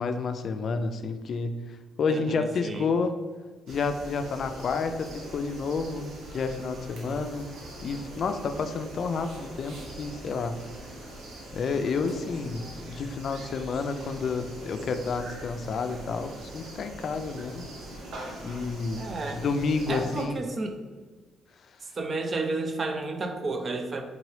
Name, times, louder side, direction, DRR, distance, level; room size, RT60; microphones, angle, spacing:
voice 1, 0.0-1.6 2.0-3.2 3.7-7.5 7.8-10.6 11.5-17.7 18.4-20.4, left 4 dB, 55° left, 8 dB, 0.3 m, -30 dB
voice 2, 2.1-2.9 19.0-19.5 19.9-20.8 21.9-24.0, right 3 dB, 40° right, 6 dB, 0.5 m, -31 dB
sound 1, 3.7-20.2, right 1 dB, 80° right, 0.8 m, -42 dB
3.8 x 2.8 x 3.1 m, 1.3 s
cardioid pair, 90°, 0 cm